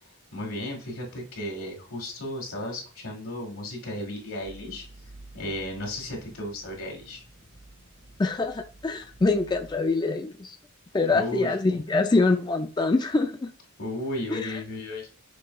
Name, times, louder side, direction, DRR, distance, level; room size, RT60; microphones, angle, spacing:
voice 1, 0.3-4.8 5.3-7.2 11.1-11.6 13.8-15.1, left 1 dB, 90° left, 0 dB, 1.8 m, -34 dB
sound 1, 4.4-9.9, right 2 dB, 50° right, 2.0 m, -50 dB
voice 2, 8.2-10.6 10.9-13.5 14.3-14.6, left 3 dB, 20° left, 5 dB, 0.4 m, -25 dB
6.0 x 3.1 x 2.3 m, 0.38 s
head